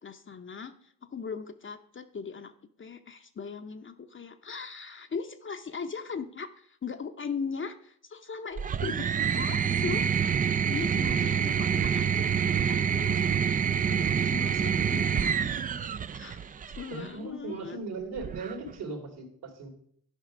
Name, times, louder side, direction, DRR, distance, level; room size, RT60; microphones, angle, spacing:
voice 1, 0.0-2.5 2.8-10.1 10.7-13.2 13.9-15.3 16.1-16.4 16.8-17.8, left 5 dB, 30° left, 8 dB, 0.7 m, -39 dB
sound 1, 8.6-17.0 18.2-18.8, right 7 dB, 20° right, 0.3 m, -27 dB
voice 2, 16.9-19.7, right 3 dB, 65° right, 2 dB, 2.7 m, -38 dB
11.0 x 5.0 x 5.0 m, 0.64 s
supercardioid pair, 65°, 42 cm